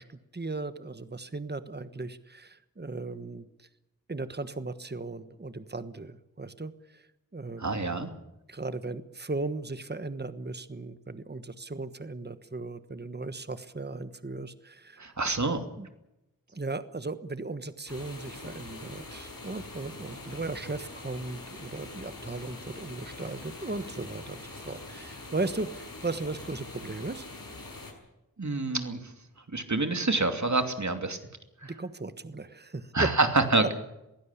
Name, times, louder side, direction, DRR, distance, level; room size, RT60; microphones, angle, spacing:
voice 1, 0.0-3.7 4.1-7.0 7.3-7.6 8.5-15.1 15.8-15.9 16.5-24.4 24.7-27.2 31.6-33.1, right 3 dB, 30° right, 12 dB, 1.3 m, -37 dB
voice 2, 7.6-8.1 15.0-15.6 28.4-29.1 29.5-31.2 31.6-31.7 32.9-33.7, right 3 dB, 55° right, 7 dB, 2.8 m, -27 dB
sound 1, 17.9-27.9, left 2 dB, 80° left, 6.8 m, -44 dB
22.5 x 16.5 x 8.4 m, 0.92 s
wide cardioid pair, 60°, 34 cm